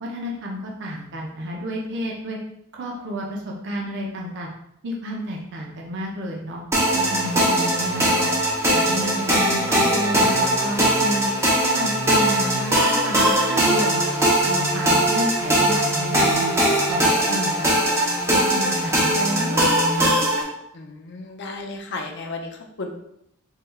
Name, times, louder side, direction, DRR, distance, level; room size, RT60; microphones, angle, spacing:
voice 1, 0.0-2.4 2.7-4.5 4.8-6.6 6.9-8.3 8.7-11.3 11.6-14.0 14.4-16.5 16.9-17.7 18.3-19.6, equal, 55° right, -1 dB, 0.7 m, -31 dB
sound 1, 6.7-20.4, right 1 dB, 15° right, 0.7 m, -20 dB
voice 2, 20.7-22.9, left 3 dB, 55° left, 2 dB, 0.6 m, -34 dB
4.7 x 3.2 x 2.3 m, 0.77 s
head